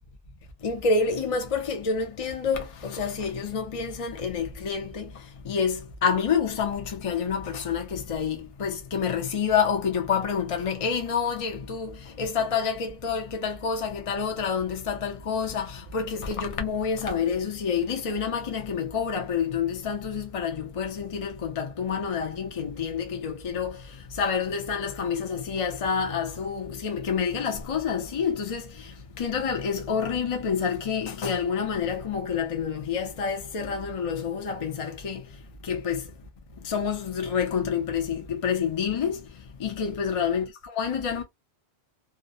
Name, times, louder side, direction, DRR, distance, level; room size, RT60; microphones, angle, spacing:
voice 1, 0.6-36.1 36.6-41.2, left 6 dB, 45° left, 0.4 m, -28 dB
2.4 x 2.0 x 2.5 m
omnidirectional pair, 1.1 m